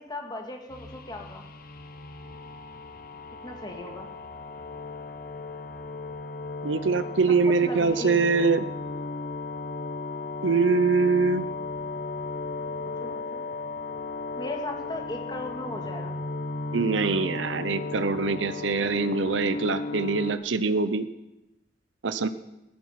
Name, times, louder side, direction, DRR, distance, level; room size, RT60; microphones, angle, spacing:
voice 1, 0.0-1.4 3.4-4.1 7.4-8.2 13.0-13.4 14.4-16.2, left 1 dB, 25° left, 2 dB, 2.2 m, -37 dB
sound 1, 0.7-20.3, left 3 dB, 50° left, 1.3 m, -36 dB
voice 2, 6.6-8.6 10.4-11.5 16.7-21.1 22.0-22.3, right 4 dB, 80° right, 11 dB, 0.7 m, -24 dB
16.0 x 14.0 x 5.8 m, 0.96 s
head